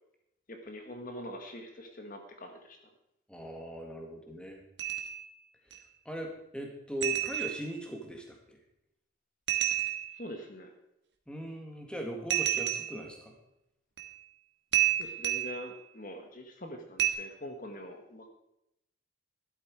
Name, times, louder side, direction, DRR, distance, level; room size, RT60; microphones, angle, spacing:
voice 1, 0.5-2.8 10.1-10.7 15.0-18.3, equal, 40° left, 4 dB, 1.5 m, -44 dB
voice 2, 3.3-4.6 6.1-8.6 11.3-13.3, equal, 5° left, 2 dB, 1.9 m, -39 dB
sound 1, 4.8-5.3 5.7-5.8 7.0-7.8 9.5-10.2 12.3-13.1 14.0-14.1 14.7-15.7 17.0-17.1, right 13 dB, 55° right, 1.5 m, -30 dB
12.5 x 12.0 x 4.8 m, 0.83 s
head